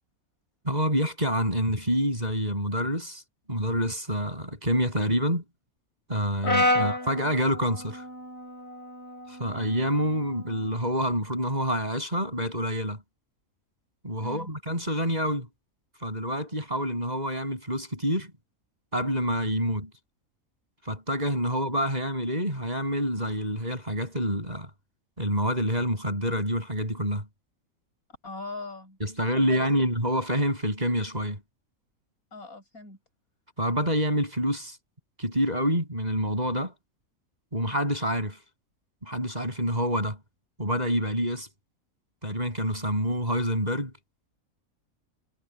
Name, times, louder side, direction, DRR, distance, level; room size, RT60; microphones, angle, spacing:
voice 1, 0.6-3.2 3.5-5.4 6.1-8.1 9.3-13.0 14.0-15.5 16.0-18.3 18.9-19.9 20.8-24.7 25.2-27.3 29.0-31.4 33.6-34.8 35.2-36.7 37.5-38.4 39.0-40.2 40.6-41.5 42.2-43.9, equal, 30° right, 7.6 m, -27 dB
Brass instrument, 6.4-10.7, left 1 dB, 50° left, 6.8 m, -30 dB
voice 2, 14.2-14.5 28.2-29.7 32.3-33.0, left 2 dB, 85° left, 8.3 m, -41 dB
omnidirectional pair, 1.5 m